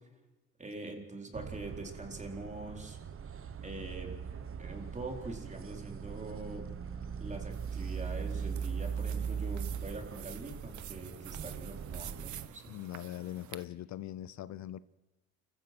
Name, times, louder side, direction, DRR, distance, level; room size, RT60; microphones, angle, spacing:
voice 1, 0.6-3.0 3.6-4.2 4.6-6.7 7.2-12.7, right 2 dB, 25° right, 4.2 m, -44 dB
sound 1, 1.3-12.5, right 6 dB, 45° right, 1.2 m, -40 dB
sound 2, 7.5-13.6, right 12 dB, 75° right, 1.0 m, -50 dB
voice 2, 12.7-14.8, left 13 dB, 65° left, 0.7 m, -41 dB
29.5 x 14.5 x 6.1 m
cardioid pair, 90°, 30 cm